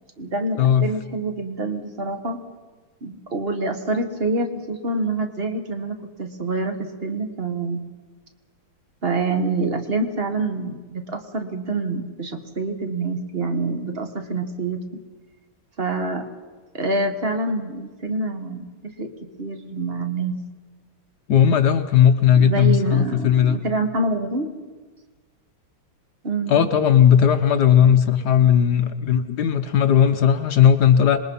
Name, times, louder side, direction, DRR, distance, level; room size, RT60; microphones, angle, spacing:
voice 1, 0.2-2.4 3.0-7.8 9.0-14.8 15.8-16.2 16.7-19.1 19.4-20.4 22.3-24.5 26.2-26.7, right 3 dB, 30° right, 6 dB, 1.5 m, -26 dB
voice 2, 21.3-23.6 26.5-31.2, left 9 dB, 60° left, 8 dB, 1.2 m, -16 dB
26.0 x 21.0 x 5.5 m, 1.4 s
omnidirectional pair, 2.3 m